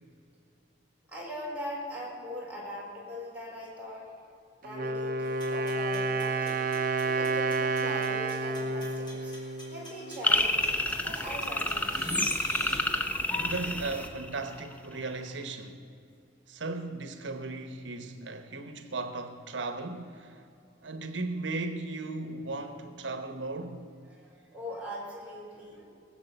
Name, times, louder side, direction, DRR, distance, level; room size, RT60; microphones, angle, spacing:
voice 1, 1.1-4.1 4.6-6.6 7.0-9.3 9.7-12.0 24.1-25.8, left 1 dB, 10° right, 4.1 m, -41 dB
Wind instrument woodwind instrument, 4.6-10.4, right 3 dB, 50° right, 0.7 m, -30 dB
sound 1, 5.2-12.8, left 1 dB, 25° left, 3.5 m, -49 dB
sound 2, 10.2-14.7, left 1 dB, 10° left, 0.8 m, -29 dB
voice 2, 13.4-15.8 16.5-20.4 20.8-23.9, right 3 dB, 85° right, 1.0 m, -36 dB
19.5 x 7.5 x 8.0 m
head